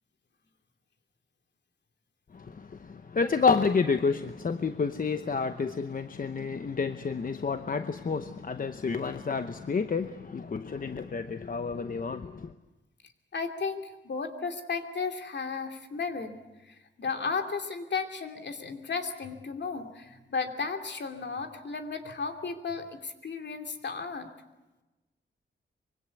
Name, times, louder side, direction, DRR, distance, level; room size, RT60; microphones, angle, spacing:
voice 1, 2.3-12.5, left 5 dB, 45° left, 0.9 m, -29 dB
voice 2, 13.3-16.4 16.7-24.3, left 5 dB, 65° left, 2.7 m, -34 dB
24.5 x 23.5 x 8.3 m
wide cardioid pair, 165°, 20 cm